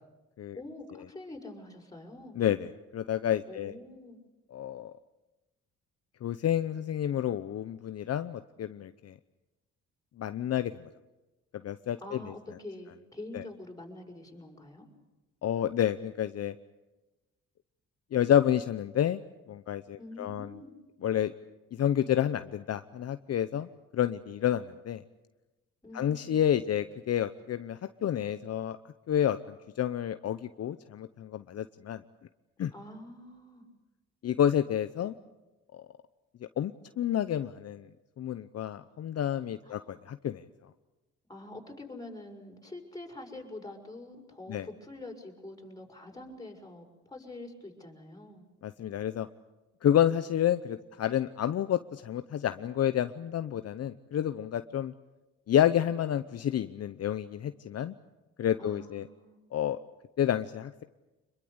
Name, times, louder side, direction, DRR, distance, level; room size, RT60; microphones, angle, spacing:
voice 1, 0.5-2.4 3.5-4.2 12.0-14.9 20.0-20.7 25.8-26.4 32.7-33.7 39.6-39.9 41.3-48.4 58.6-59.4, left 2 dB, 10° left, 1 dB, 6.3 m, -45 dB
voice 2, 2.4-3.7 4.5-4.9 6.2-9.1 10.2-10.8 11.6-12.2 13.3-13.4 15.4-16.5 18.1-19.2 19.5-20.5 21.0-21.3 21.8-25.0 25.9-28.8 29.1-32.0 32.6-32.7 34.2-35.1 35.7-35.8 36.6-36.7 37.0-37.9 38.2-40.4 44.5-44.7 48.6-49.3 49.8-54.9 55.5-57.9 58.4-59.0 59.5-59.8 60.2-60.8, left 10 dB, 55° left, 11 dB, 0.8 m, -29 dB
25.5 x 22.5 x 8.1 m, 1.1 s
cardioid pair, 90°, 30 cm